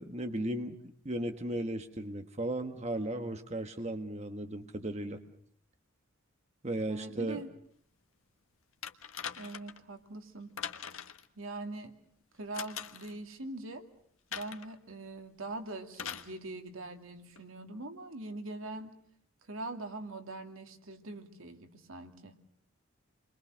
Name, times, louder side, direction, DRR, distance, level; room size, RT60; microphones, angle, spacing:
voice 1, 0.0-5.2 6.6-7.4, right 1 dB, 35° right, 6 dB, 1.5 m, -36 dB
voice 2, 6.9-7.5 9.4-10.5 11.4-11.9 12.4-13.8 14.3-18.9 19.5-22.3, right 2 dB, 85° right, 5 dB, 2.5 m, -42 dB
sound 1, 8.8-9.8 10.6-11.3 12.5-13.1 14.3-14.7 15.9-16.3 17.4-17.5, left 8 dB, 85° left, 1.4 m, -41 dB
29.5 x 23.0 x 6.4 m, 0.64 s
head